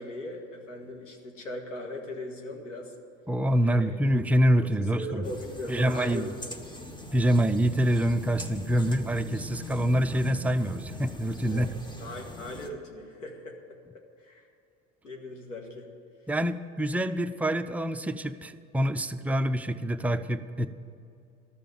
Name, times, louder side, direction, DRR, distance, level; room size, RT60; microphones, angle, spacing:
voice 1, 0.0-3.0 3.6-4.0 4.6-6.5 11.5-11.7 12.0-13.8 14.2-14.5 15.0-15.9, left 1 dB, 85° left, 3 dB, 1.6 m, -39 dB
voice 2, 3.3-5.3 5.7-6.3 7.1-11.7 16.3-20.7, equal, 5° right, 8 dB, 0.3 m, -26 dB
sound 1, 5.2-12.7, left 1 dB, 10° left, 1.0 m, -41 dB
12.5 x 6.8 x 9.2 m, 2.6 s
hypercardioid pair, 75°, 37 cm